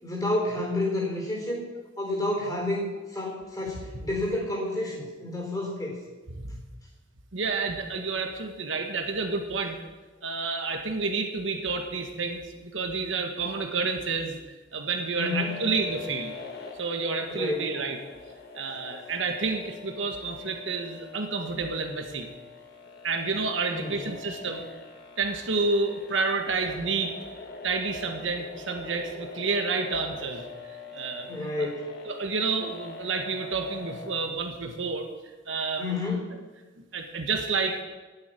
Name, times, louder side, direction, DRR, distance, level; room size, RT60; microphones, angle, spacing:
voice 1, 0.0-1.6 2.0-6.0 15.2-15.6 17.3-17.8 23.7-24.1 31.3-32.0 35.8-36.4, left 2 dB, 20° left, -2 dB, 4.1 m, -30 dB
voice 2, 7.3-9.8 10.2-14.4 14.7-16.3 16.8-18.0 18.5-22.3 23.0-24.7 25.2-27.1 27.6-31.3 31.6-31.7 32.1-35.1 35.5-35.9 36.9-37.8, right 4 dB, 75° right, 4 dB, 1.4 m, -29 dB
sound 1, 15.2-34.2, left 4 dB, 55° left, 1.8 m, -44 dB
9.6 x 8.0 x 9.5 m, 1.3 s
head